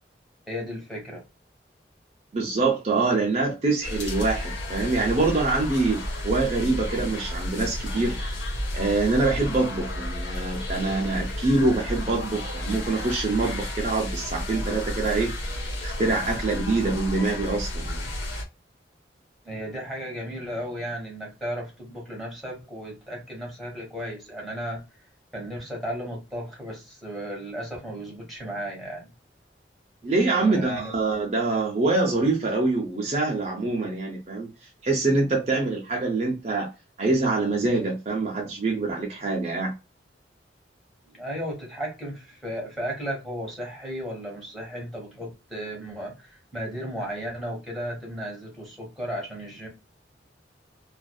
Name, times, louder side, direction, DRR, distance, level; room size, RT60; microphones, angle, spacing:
voice 1, 0.5-1.2 9.3-9.4 19.4-24.8 25.3-29.1 30.3-30.9 41.1-49.7, equal, ahead, 1.3 m, -35 dB
voice 2, 2.3-8.2 8.7-18.1 30.0-34.5 34.8-36.7 37.0-39.7, right 3 dB, 35° right, 0.6 m, -25 dB
sound 1, 3.8-18.4, left 1 dB, 85° left, 1.1 m, -32 dB
2.5 x 2.5 x 2.2 m
head